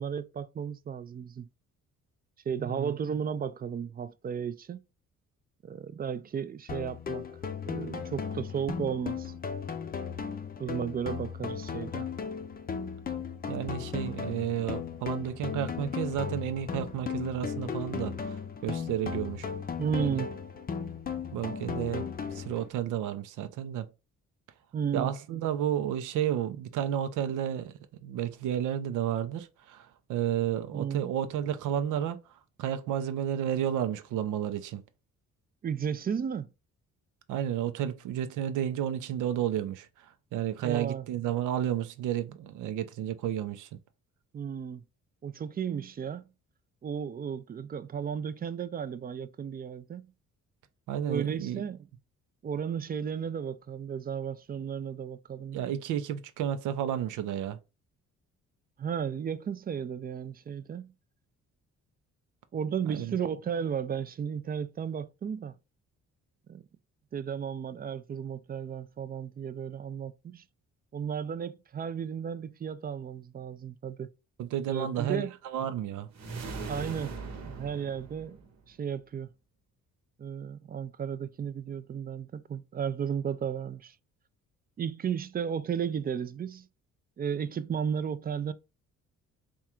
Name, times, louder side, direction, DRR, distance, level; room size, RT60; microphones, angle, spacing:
voice 1, 0.0-1.5 2.5-4.8 5.6-7.3 7.6-9.3 10.6-12.1 19.8-20.3 24.7-25.1 30.7-31.1 35.6-36.5 40.6-41.1 44.3-44.8 45.2-46.3 46.8-50.0 51.1-51.9 52.4-55.8 58.8-60.9 62.5-65.6 66.5-66.7 67.1-70.5 70.9-74.1 74.7-75.3 76.7-77.2 77.4-78.4 78.7-79.3 80.2-84.0 84.8-86.7 87.2-88.5, right 7 dB, 30° right, 0.4 m, -34 dB
voice 2, 2.6-2.9 13.5-19.5 19.9-20.2 21.3-23.9 24.9-32.2 32.6-34.8 37.3-39.9 40.3-43.8 50.9-51.6 55.5-57.6 62.9-63.2 74.4-76.1, right 10 dB, 90° right, 0.6 m, -32 dB
sound 1, 6.7-22.7, left 6 dB, 30° left, 0.5 m, -36 dB
sound 2, 76.1-78.7, right 4 dB, 65° right, 1.1 m, -40 dB
3.6 x 2.4 x 4.3 m
cardioid pair, 90°, 30 cm